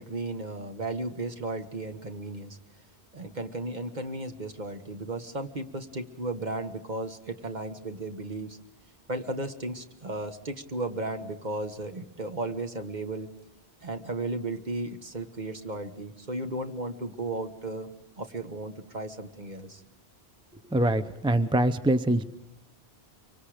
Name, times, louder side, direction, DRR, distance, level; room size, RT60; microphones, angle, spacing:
voice 1, 0.0-2.6 3.1-8.6 9.1-13.3 13.8-17.9 18.2-19.8, right 2 dB, 40° right, 7 dB, 1.5 m, -35 dB
voice 2, 20.7-22.2, right 1 dB, 5° right, 10 dB, 0.5 m, -24 dB
24.5 x 24.5 x 5.0 m, 0.79 s
omnidirectional pair, 1.1 m